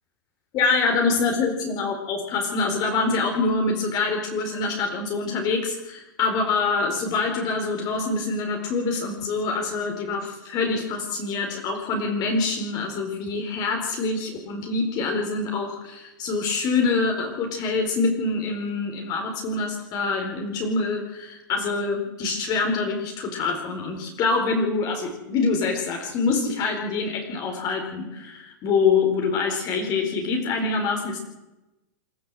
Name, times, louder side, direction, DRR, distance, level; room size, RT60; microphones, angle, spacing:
voice 1, 0.5-31.2, left 4 dB, 40° left, 2 dB, 4.6 m, -25 dB
27.5 x 12.5 x 7.7 m, 0.99 s
hypercardioid pair, 125°, 11 cm